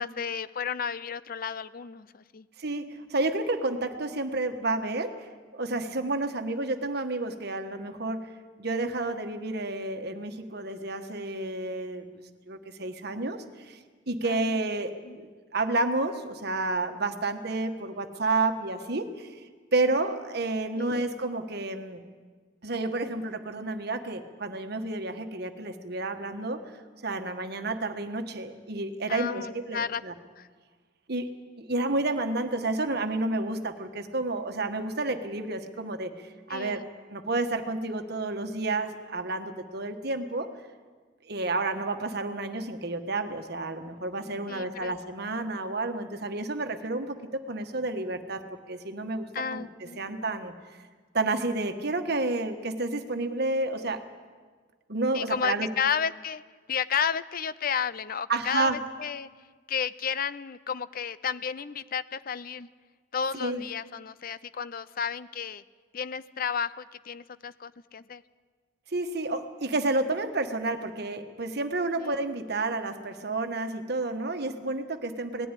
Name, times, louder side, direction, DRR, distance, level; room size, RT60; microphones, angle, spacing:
voice 1, 0.0-2.5 14.2-14.5 15.0-15.2 20.8-21.0 29.1-30.0 30.4-30.5 36.5-36.9 44.5-44.9 49.3-50.0 55.1-56.4 56.7-59.3 59.7-62.7 63.1-65.6 65.9-68.2 72.0-72.2, left 7 dB, 50° left, 16 dB, 0.6 m, -32 dB
voice 2, 2.6-5.3 5.5-8.3 8.6-13.8 14.1-19.3 19.7-22.0 22.6-26.6 27.0-30.1 31.1-31.3 31.6-36.8 37.1-40.5 41.2-49.6 50.0-50.5 51.1-54.1 54.9-55.7 58.3-58.8 63.3-63.6 68.9-75.5, right 2 dB, 60° right, 6 dB, 1.4 m, -30 dB
19.0 x 14.0 x 9.9 m, 1.5 s
head